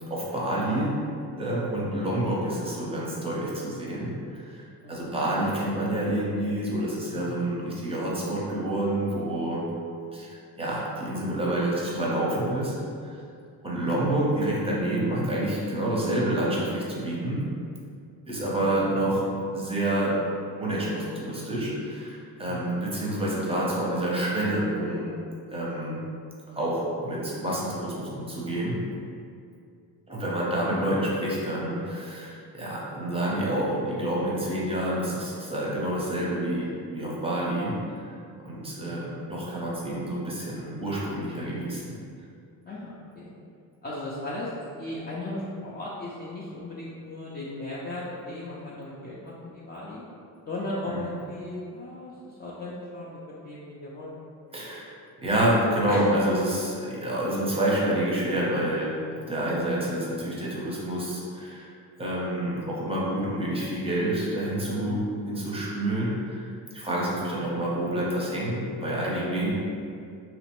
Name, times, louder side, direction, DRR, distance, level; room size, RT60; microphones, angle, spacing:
voice 1, 0.1-0.9 1.4-4.6 4.9-9.6 10.1-12.7 13.0-13.2 13.6-17.4 18.3-19.2 19.5-20.1 20.6-25.1 25.5-25.9 26.5-28.8 30.1-37.8 38.0-38.1 38.4-41.9 50.9-51.1 54.5-54.9 55.2-58.9 59.3-61.7 62.0-66.5 66.7-69.5, right 1 dB, 15° right, -6 dB, 0.6 m, -28 dB
voice 2, 4.8-5.2 7.1-7.5 13.7-13.9 18.8-19.3 22.4-22.8 38.8-39.3 42.7-43.3 43.8-44.5 44.8-50.0 50.5-54.2 55.9-56.1 64.8-65.2, left 1 dB, 25° left, -8 dB, 0.4 m, -37 dB
2.9 x 2.0 x 2.9 m, 2.4 s
cardioid pair, 95°, 41 cm